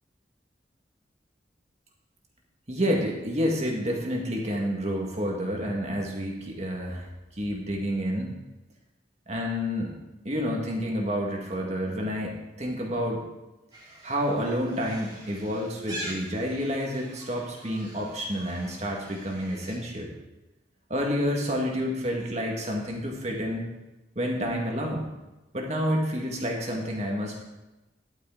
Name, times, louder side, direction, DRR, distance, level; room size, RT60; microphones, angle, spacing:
voice 1, 2.7-7.1 7.4-8.3 9.3-9.9 10.2-13.2 14.0-20.1 20.9-23.7 24.2-25.1 25.5-27.4, equal, 40° right, 0 dB, 2.0 m, -29 dB
sound 1, 13.7-19.8, right 1 dB, 25° right, 2.1 m, -44 dB
11.5 x 9.1 x 3.9 m, 1.0 s
head